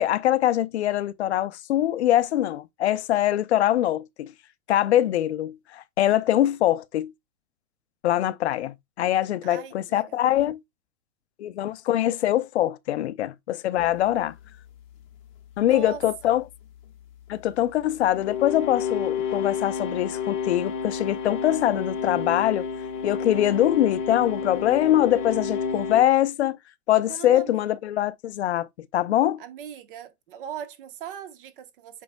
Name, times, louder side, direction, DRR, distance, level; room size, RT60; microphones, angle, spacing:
voice 1, 0.0-4.3 4.7-7.1 8.0-10.6 11.4-14.3 15.6-16.4 17.3-22.7 23.0-26.6 26.9-28.7 28.9-29.4, left 12 dB, 50° left, 0.6 m, -23 dB
voice 2, 9.4-10.3 15.6-16.0 27.0-27.7 29.4-32.0, right 9 dB, 35° right, 1.0 m, -39 dB
sound 1, 13.8-26.0, left 6 dB, 30° left, 1.4 m, -31 dB
8.4 x 5.3 x 2.2 m
hypercardioid pair, 165°, 45 cm